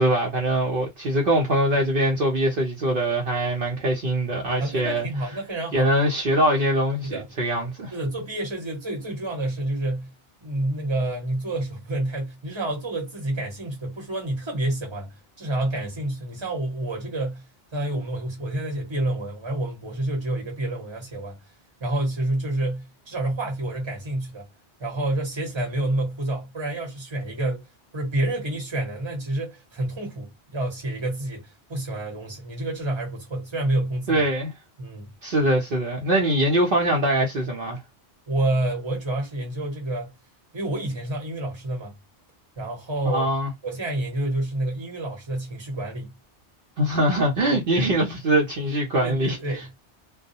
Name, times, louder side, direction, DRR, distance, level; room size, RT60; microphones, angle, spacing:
voice 1, 0.0-5.1 5.7-7.9 34.1-34.5 35.2-37.8 43.0-43.5 46.8-49.4, right 1 dB, 55° right, 0.9 m, -22 dB
voice 2, 4.6-5.9 7.0-7.3 7.9-10.1 10.4-17.5 17.7-21.4 21.8-24.5 24.8-27.7 27.9-34.2 34.8-35.1 38.3-40.1 40.5-42.0 42.6-43.3 43.6-46.2 47.8-47.9 49.0-49.8, right 1 dB, 25° right, 1.0 m, -28 dB
2.3 x 2.1 x 2.7 m
omnidirectional pair, 1.2 m